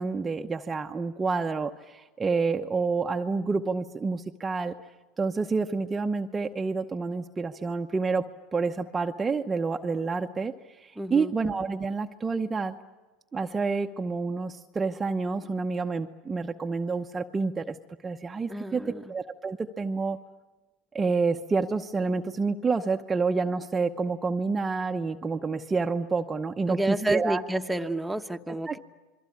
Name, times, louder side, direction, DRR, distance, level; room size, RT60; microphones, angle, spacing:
voice 1, 0.0-4.7 5.2-8.2 8.5-12.8 13.3-17.8 18.0-18.8 19.1-20.2 20.9-27.4 28.7-28.8, right 4 dB, 20° right, 4 dB, 0.9 m, -28 dB
voice 2, 11.0-11.4 18.5-19.1 26.7-28.8, right 1 dB, 5° right, 5 dB, 1.2 m, -30 dB
28.0 x 22.5 x 8.6 m, 1.2 s
hypercardioid pair, 95°, 0 cm